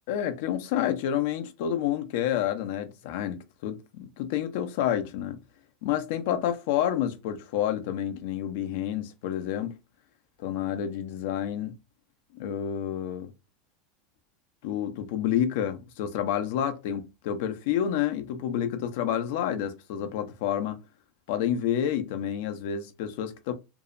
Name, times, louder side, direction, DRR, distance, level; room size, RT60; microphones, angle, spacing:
voice 1, 0.1-5.4 5.8-9.8 10.4-11.8 12.3-13.3 14.6-20.8 21.3-23.5, left 10 dB, 65° left, 0.5 m, -29 dB
2.6 x 2.0 x 2.4 m
supercardioid pair, 140°, 0 cm